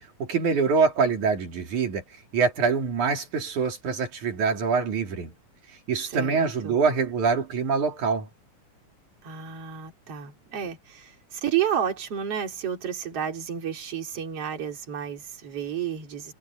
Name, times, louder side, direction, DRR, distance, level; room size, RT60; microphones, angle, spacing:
voice 1, 0.2-2.0 2.3-5.3 5.9-8.3, right 5 dB, 80° right, 4.5 m, -24 dB
voice 2, 6.0-6.7 9.2-16.3, right 9 dB, 50° right, 4.1 m, -31 dB
omnidirectional pair, 3.4 m